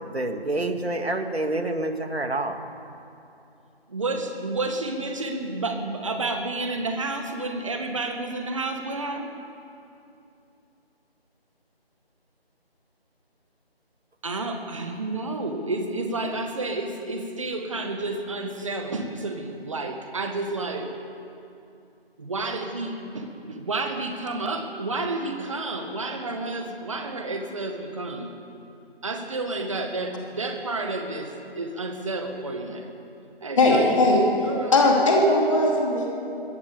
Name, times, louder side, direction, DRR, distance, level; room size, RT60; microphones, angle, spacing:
voice 1, 0.0-2.6, right 2 dB, 80° right, 6 dB, 2.6 m, -27 dB
voice 2, 3.9-9.3 14.2-20.9 22.2-28.3 29.0-32.9 33.4-34.0 34.4-34.8, right 2 dB, 30° right, 4 dB, 2.0 m, -30 dB
voice 3, 33.6-34.2 34.7-36.1, left 2 dB, 30° left, -2 dB, 3.6 m, -19 dB
21.0 x 18.0 x 7.0 m, 2.7 s
figure-of-eight pair, 165°, 31 cm